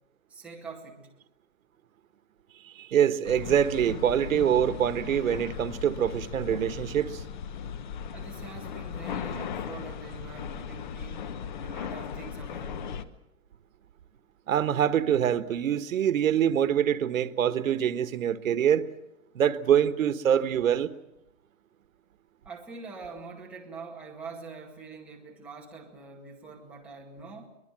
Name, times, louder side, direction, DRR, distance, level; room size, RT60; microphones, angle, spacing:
voice 1, 0.3-1.1 8.1-11.3 11.6-12.9 22.4-27.5, right 4 dB, 5° right, 2.1 m, -44 dB
voice 2, 2.7-7.2 14.5-18.9 19.3-20.9, right 9 dB, 90° right, 1.4 m, -25 dB
sound 1, 3.2-13.0, left 7 dB, 35° left, 1.0 m, -37 dB
23.5 x 20.5 x 7.5 m
hypercardioid pair, 175°, 39 cm